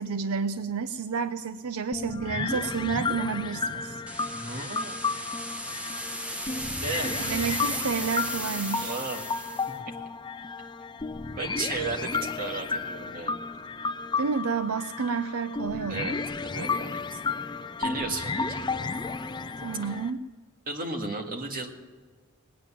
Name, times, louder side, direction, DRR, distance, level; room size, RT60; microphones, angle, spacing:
voice 1, 0.0-4.0 7.2-9.0 14.1-16.2 19.6-20.2, right 5 dB, 80° right, 11 dB, 0.5 m, -30 dB
sound 1, 1.9-20.1, left 4 dB, 20° left, 0.5 m, -33 dB
sound 2, 4.1-9.7, equal, 5° right, 0.9 m, -35 dB
voice 2, 4.3-5.0 6.8-7.2 8.8-9.2 9.7-9.8 11.3-13.4 15.9-16.2 16.4-17.2 17.8-18.6 19.9-20.0 20.7-21.7, right 3 dB, 40° right, 3 dB, 1.9 m, -34 dB
19.5 x 9.2 x 7.3 m, 1.5 s
head